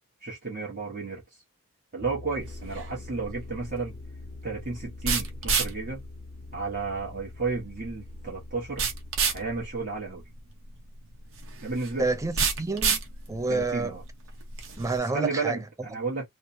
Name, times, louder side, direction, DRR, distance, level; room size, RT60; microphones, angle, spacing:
voice 1, 0.2-1.4 1.9-4.0 4.4-6.0 6.5-8.9 9.3-10.2 11.6-12.1 13.5-14.0 15.1-16.3, right 4 dB, 40° right, 1.0 m, -32 dB
sound 1, 2.0-9.7, left 3 dB, 35° left, 0.5 m, -45 dB
sound 2, 2.4-15.0, right 5 dB, 60° right, 0.8 m, -32 dB
voice 2, 12.0-13.0 13.3-13.9 14.7-15.6, right 3 dB, 15° right, 0.4 m, -28 dB
3.1 x 2.0 x 2.6 m
head